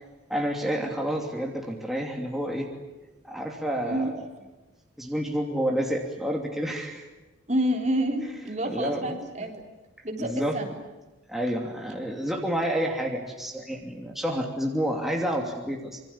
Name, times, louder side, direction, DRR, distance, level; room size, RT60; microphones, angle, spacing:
voice 1, 0.3-2.7 3.2-4.3 5.0-7.1 8.6-9.5 10.2-10.6 11.3-16.0, equal, ahead, 0 dB, 2.9 m, -29 dB
voice 2, 7.5-9.6 10.0-10.8, right 1 dB, 35° right, 3 dB, 3.6 m, -28 dB
26.5 x 24.0 x 8.6 m, 1.1 s
head